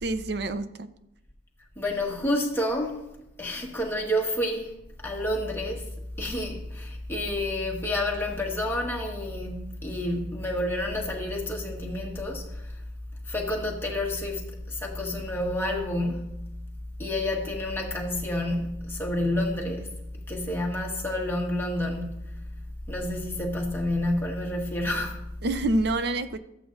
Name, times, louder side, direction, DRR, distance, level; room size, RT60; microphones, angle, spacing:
voice 1, 0.0-0.9 25.4-26.4, right 2 dB, 60° right, 0.6 m, -27 dB
voice 2, 1.8-3.0 3.4-5.9 6.2-12.7 13.3-16.5 17.0-22.4 22.9-25.3, left 1 dB, 10° left, 1.4 m, -29 dB
13.5 x 7.9 x 2.6 m
head